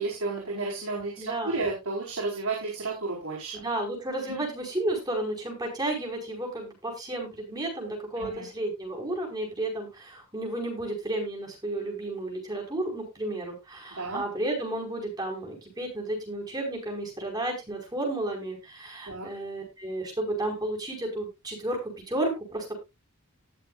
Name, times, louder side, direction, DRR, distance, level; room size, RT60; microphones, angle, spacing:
voice 1, 0.0-3.5 4.3-4.4 8.2-8.4 14.0-14.2 19.1-19.3, right 3 dB, 80° right, -3 dB, 4.6 m, -32 dB
voice 2, 1.2-1.6 3.5-22.7, right 1 dB, 20° right, -1 dB, 5.2 m, -32 dB
19.5 x 6.8 x 2.5 m, 0.24 s
head